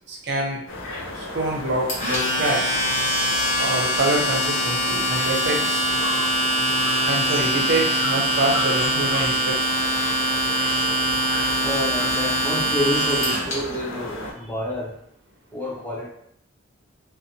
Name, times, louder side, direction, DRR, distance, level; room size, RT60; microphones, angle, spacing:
voice 1, 0.1-0.6 1.1-2.8 3.6-5.9 7.0-9.7, right 2 dB, 55° right, 0 dB, 0.5 m, -26 dB
sound 1, 0.7-14.3, left 2 dB, 75° left, 0.6 m, -33 dB
Domestic sounds home sounds, 1.9-13.5, right 1 dB, 35° left, 0.8 m, -23 dB
voice 2, 11.6-15.0 15.5-16.1, left 1 dB, 10° left, -4 dB, 0.4 m, -29 dB
2.6 x 2.0 x 2.7 m, 0.70 s
head